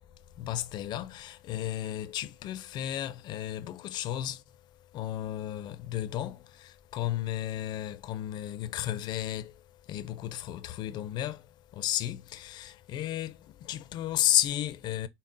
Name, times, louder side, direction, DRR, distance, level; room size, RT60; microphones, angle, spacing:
voice 1, 0.3-4.4 4.9-15.1, left 13 dB, 55° left, 0.4 m, -33 dB
5.4 x 2.0 x 2.4 m
supercardioid pair, 90°, 9 cm